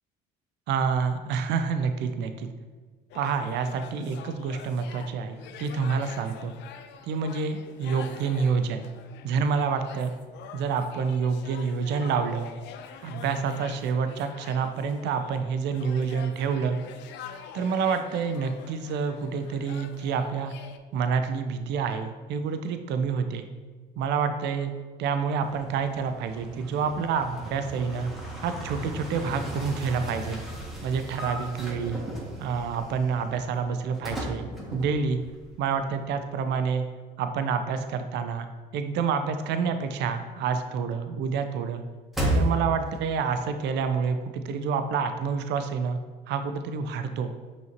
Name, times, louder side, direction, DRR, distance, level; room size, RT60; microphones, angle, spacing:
voice 1, 0.7-2.5 3.1-6.5 7.0-8.8 9.2-10.1 10.5-12.5 13.0-16.8 17.5-20.5 20.9-23.5 24.0-24.7 25.0-28.1 28.4-30.4 30.8-32.1 32.4-35.2 35.6-36.9 37.2-38.5 38.7-41.8 42.3-46.0 46.3-47.3, right 5 dB, 60° right, 8 dB, 0.4 m, -28 dB
sound 1, 3.1-20.8, left 7 dB, 60° left, 0.4 m, -46 dB
sound 2, 25.4-35.7 36.0-36.1 42.1-43.0, right 1 dB, ahead, 1.2 m, -34 dB
5.7 x 2.7 x 2.9 m, 1.4 s
hypercardioid pair, 65°, 20 cm